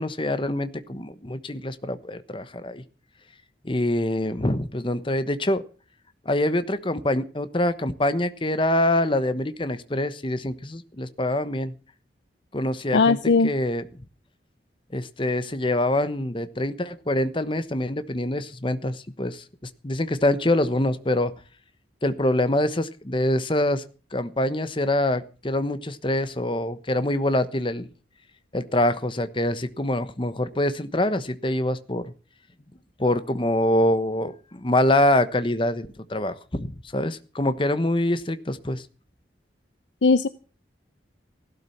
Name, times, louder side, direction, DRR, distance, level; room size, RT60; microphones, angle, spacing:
voice 1, 0.0-2.8 3.6-5.6 6.2-11.7 12.5-13.2 13.4-13.8 14.9-21.3 22.0-23.8 24.1-27.9 28.5-32.1 33.0-38.8, left 1 dB, 30° left, 12 dB, 1.1 m, -25 dB
voice 2, 12.9-13.5 40.0-40.3, left 4 dB, 80° left, 14 dB, 0.7 m, -18 dB
16.5 x 12.5 x 5.8 m, 0.37 s
head